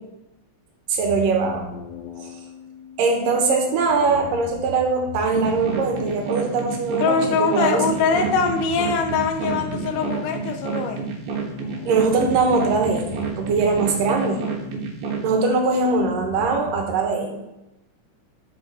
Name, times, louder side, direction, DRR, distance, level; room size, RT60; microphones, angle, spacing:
voice 1, 0.9-1.7 3.0-7.9 11.8-14.4 15.2-17.4, right 4 dB, 90° right, 3 dB, 2.9 m, -21 dB
sound 1, 1.0-17.0, left 5 dB, 60° left, 2.1 m, -39 dB
sound 2, 5.3-15.3, right 5 dB, 75° right, 2.8 m, -30 dB
voice 2, 7.0-11.1, left 5 dB, 80° left, 6 dB, 2.3 m, -22 dB
8.3 x 6.9 x 4.1 m, 0.91 s
omnidirectional pair, 3.8 m